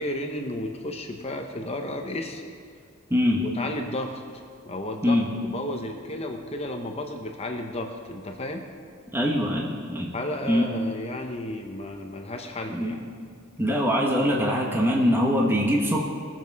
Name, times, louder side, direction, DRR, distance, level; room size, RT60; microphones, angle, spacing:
voice 1, 0.0-2.4 3.4-8.7 10.1-13.0, left 1 dB, 30° left, 3 dB, 0.9 m, -33 dB
voice 2, 3.1-3.4 5.0-5.3 9.1-10.1 10.5-10.6 12.7-13.0 13.6-16.1, equal, 10° right, -1 dB, 1.2 m, -23 dB
20.0 x 7.6 x 4.7 m, 2.1 s
head